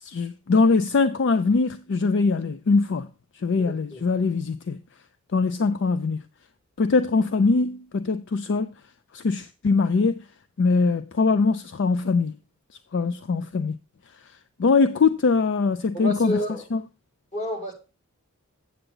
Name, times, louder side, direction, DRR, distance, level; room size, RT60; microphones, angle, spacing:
voice 1, 0.0-3.1 3.3-4.8 5.3-6.2 6.8-8.7 9.1-10.2 10.6-12.3 12.9-13.7 14.6-16.4 16.7-16.8, left 4 dB, 55° left, 0.4 m, -22 dB
voice 2, 3.6-4.1 15.9-16.6 17.3-17.7, left 1 dB, 30° left, 2.4 m, -30 dB
8.0 x 7.9 x 3.8 m
head